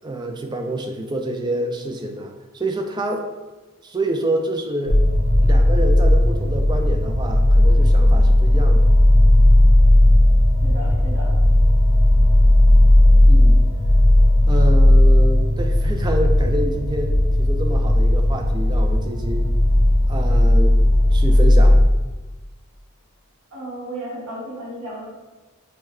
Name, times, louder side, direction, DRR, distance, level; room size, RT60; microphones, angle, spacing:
voice 1, 0.0-3.3 3.8-5.0 5.4-8.9 13.2-13.6 14.5-19.5 20.1-20.8 21.1-21.8, right 1 dB, 20° right, 4 dB, 0.3 m, -27 dB
sound 1, 4.9-21.9, left 1 dB, 50° right, 0.8 m, -15 dB
voice 2, 10.6-11.4 23.5-25.1, right 1 dB, 65° right, -6 dB, 1.4 m, -34 dB
6.4 x 2.2 x 3.1 m, 1.2 s
head